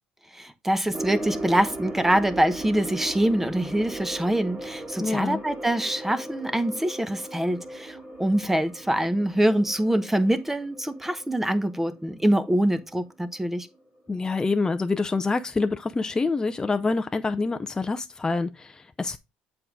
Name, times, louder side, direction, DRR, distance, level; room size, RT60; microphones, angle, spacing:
voice 1, 0.3-13.7, right 1 dB, 10° right, 1.0 m, -24 dB
sound 1, 0.9-13.5 13.7-13.8 14.4-14.5, right 1 dB, 30° right, 2.2 m, -38 dB
voice 2, 5.0-5.4 14.1-19.2, left 3 dB, 20° left, 0.6 m, -26 dB
7.7 x 4.7 x 3.7 m
supercardioid pair, 80°, 4 cm